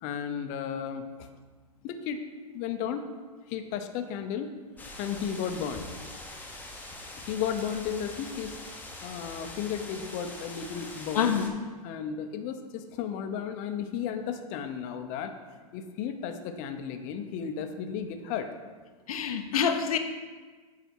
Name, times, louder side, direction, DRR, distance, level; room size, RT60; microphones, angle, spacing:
voice 1, 0.0-1.1 1.8-2.2 2.5-3.0 3.5-4.5 5.0-5.9 7.2-8.5 9.0-11.4 11.8-15.3 15.7-18.5, left 8 dB, 40° left, 7 dB, 0.7 m, -34 dB
sound 1, 4.8-11.5, left 2 dB, 10° left, 1.0 m, -43 dB
voice 2, 19.1-20.0, left 7 dB, 75° left, 7 dB, 0.7 m, -26 dB
8.0 x 4.9 x 4.6 m, 1.4 s
hypercardioid pair, 115°, 19 cm